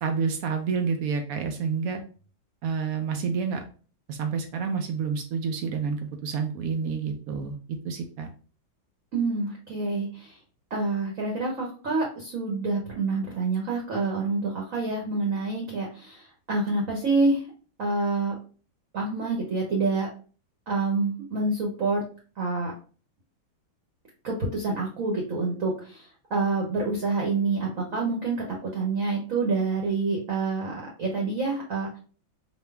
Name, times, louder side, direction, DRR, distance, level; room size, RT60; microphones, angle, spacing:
voice 1, 0.0-2.0 2.6-3.6 4.1-8.3, right 5 dB, 85° right, 5 dB, 0.7 m, -29 dB
voice 2, 9.1-10.4 10.7-17.4 17.8-18.3 18.9-20.1 20.7-22.0 22.4-22.7 24.2-30.7 31.0-32.0, right 3 dB, 55° right, -1 dB, 1.1 m, -27 dB
4.3 x 2.7 x 3.3 m, 0.38 s
omnidirectional pair, 2.1 m